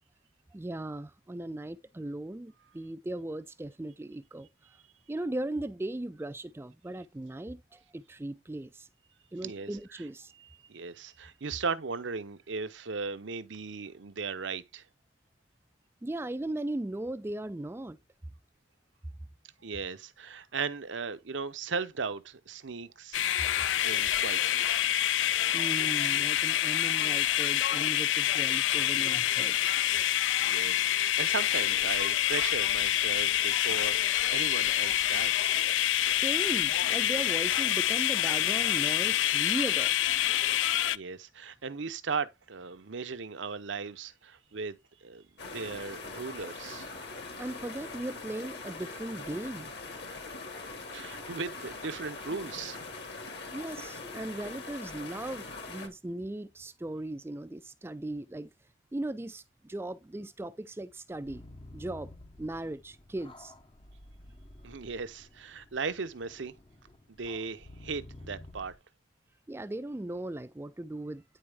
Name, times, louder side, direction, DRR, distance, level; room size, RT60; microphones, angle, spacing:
voice 1, 0.5-4.5 5.1-8.9 9.3-10.3 16.0-18.0 25.5-29.6 36.1-39.9 47.4-49.7 53.5-58.5 58.9-61.4 61.7-62.1 62.4-63.5 69.5-71.2, right 1 dB, 10° right, 0.3 m, -38 dB
voice 2, 10.7-14.8 19.6-23.2 23.8-24.7 30.4-35.6 40.8-46.9 50.8-52.8 64.6-66.5 67.1-68.7, right 4 dB, 70° right, 0.8 m, -37 dB
sound 1, 23.1-41.0, left 12 dB, 70° left, 0.4 m, -27 dB
sound 2, 45.4-55.9, left 3 dB, 55° left, 1.7 m, -42 dB
sound 3, 61.1-68.8, left 1 dB, 25° left, 0.6 m, -51 dB
10.0 x 4.2 x 3.5 m
head